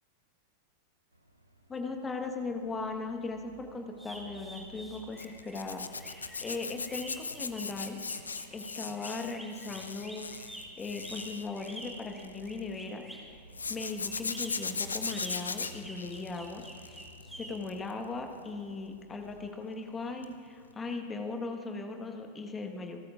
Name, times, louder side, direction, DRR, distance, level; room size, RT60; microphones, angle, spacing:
sound 1, 1.1-19.5, right 1 dB, 85° right, 0.9 m, -55 dB
voice 1, 1.7-8.0 8.5-17.0 17.3-23.0, left 3 dB, 20° left, 5 dB, 1.4 m, -38 dB
sound 2, 4.0-13.3 14.1-17.5, right 1 dB, 5° right, 2.6 m, -47 dB
Zipper (clothing), 5.2-12.6 13.5-17.2 17.6-17.9 20.2-20.4 20.7-20.8, left 4 dB, 75° left, 0.6 m, -38 dB
28.5 x 13.0 x 2.5 m, 2.2 s
figure-of-eight pair, 90°, 0 cm